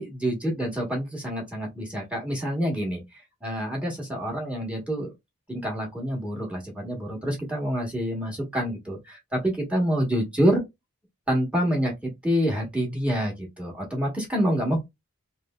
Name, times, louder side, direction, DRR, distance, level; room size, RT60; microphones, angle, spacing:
voice 1, 0.0-3.0 3.4-5.1 5.5-10.6 11.3-14.8, equal, 5° right, 1.0 m, -27 dB
3.1 x 2.6 x 2.2 m
head